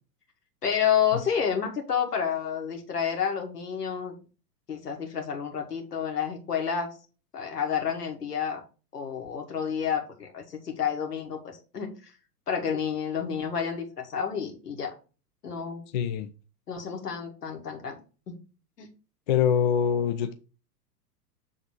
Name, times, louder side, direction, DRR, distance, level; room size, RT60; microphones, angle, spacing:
voice 1, 0.6-4.1 4.7-7.0 7.3-8.6 8.9-12.1 12.5-14.9 15.4-15.8 16.7-18.0 18.3-18.4 18.8-18.9, left 7 dB, 70° left, 2.1 m, -30 dB
voice 2, 15.9-16.3 19.3-20.3, left 8 dB, 30° left, 0.4 m, -24 dB
6.9 x 3.8 x 4.5 m
figure-of-eight pair, 100°, 49 cm